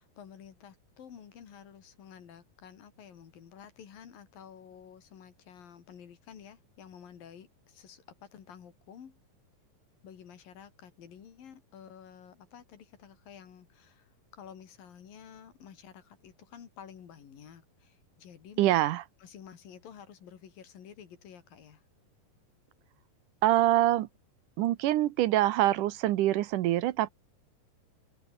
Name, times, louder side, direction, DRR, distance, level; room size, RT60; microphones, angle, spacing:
voice 1, 0.0-9.2 10.0-18.7 19.2-21.8, left 8 dB, 85° left, 4.5 m, -51 dB
voice 2, 18.6-19.0 23.4-24.1 24.6-27.1, right 14 dB, 75° right, 2.3 m, -25 dB
omnidirectional pair, 3.9 m